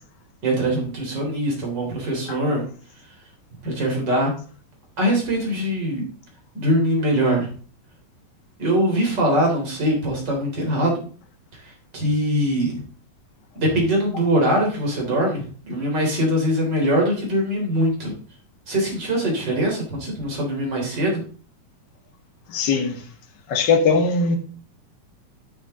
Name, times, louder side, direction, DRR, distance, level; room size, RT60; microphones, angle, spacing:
voice 1, 0.4-2.6 3.6-4.3 5.0-6.0 6.5-7.5 8.6-11.0 11.9-12.8 13.6-18.1 18.7-21.2, equal, 30° right, 3.9 m, -22 dB
voice 2, 22.5-23.0 23.5-24.4, left 4 dB, 60° left, 1.1 m, -20 dB
10.5 x 6.6 x 3.8 m
omnidirectional pair, 4.2 m